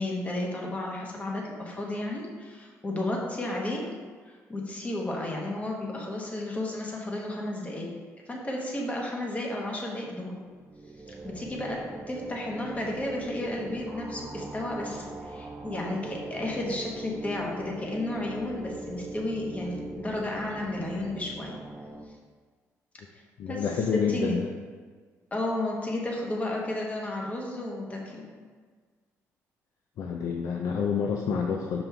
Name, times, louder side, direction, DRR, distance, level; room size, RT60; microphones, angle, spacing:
voice 1, 0.0-3.8 4.3-7.9 8.3-10.4 11.2-11.8 12.1-21.5 23.5-23.7 23.9-24.3 25.3-28.2, left 1 dB, 25° left, -1 dB, 1.3 m, -33 dB
sound 1, 10.5-22.0, right 3 dB, 25° right, 0.6 m, -41 dB
voice 2, 23.4-24.5 30.0-31.8, left 6 dB, 70° left, 1 dB, 0.5 m, -28 dB
5.9 x 5.4 x 3.4 m, 1.5 s
cardioid pair, 105°, 6 cm